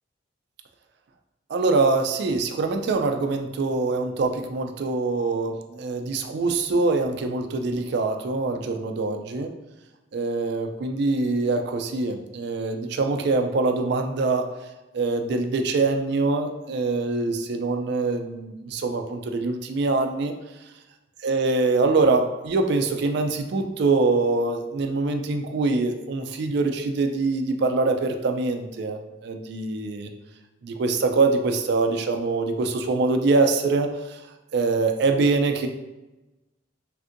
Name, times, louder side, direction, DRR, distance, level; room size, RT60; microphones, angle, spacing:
voice 1, 1.5-9.5 10.1-14.5 14.9-20.3 21.2-30.1 30.6-34.2 34.5-35.7, right 3 dB, 60° right, 5 dB, 0.3 m, -24 dB
3.4 x 2.6 x 2.5 m, 1.0 s
head